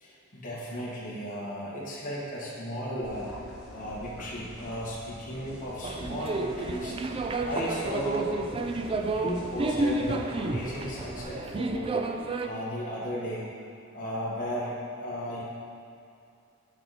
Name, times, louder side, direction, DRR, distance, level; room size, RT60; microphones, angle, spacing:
voice 1, 0.0-3.3 3.7-7.0 7.4-8.4 9.0-11.9 12.4-13.5 13.9-15.4, equal, 40° left, -6 dB, 1.3 m, -35 dB
sound 1, 3.0-11.2, equal, 5° right, 1.7 m, -47 dB
sound 2, 5.8-12.5, right 2 dB, 25° right, 0.3 m, -31 dB
8.7 x 4.8 x 4.0 m, 2.5 s
head